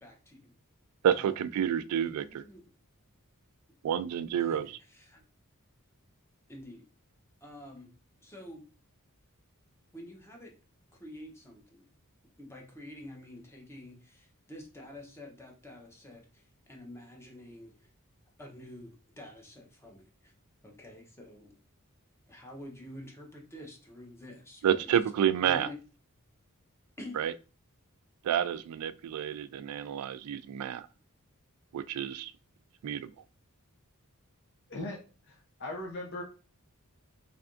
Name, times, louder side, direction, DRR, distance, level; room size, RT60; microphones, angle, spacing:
voice 1, 0.0-0.5 1.1-1.6 2.0-2.6 4.4-5.2 6.5-6.9 7.4-7.9 8.2-8.6 9.9-10.5 11.0-11.9 12.4-17.9 18.4-20.3 20.6-21.6 22.3-24.9 25.4-25.8 27.0-27.3, left 1 dB, 10° left, 0.8 m, -48 dB
voice 2, 1.0-2.2 3.8-4.8 24.6-25.7 27.2-27.3 28.2-30.8 31.7-32.3 32.8-33.1, right 9 dB, 85° right, 0.3 m, -29 dB
voice 3, 35.3-36.2, left 2 dB, 55° left, 0.8 m, -38 dB
3.4 x 3.3 x 2.5 m
head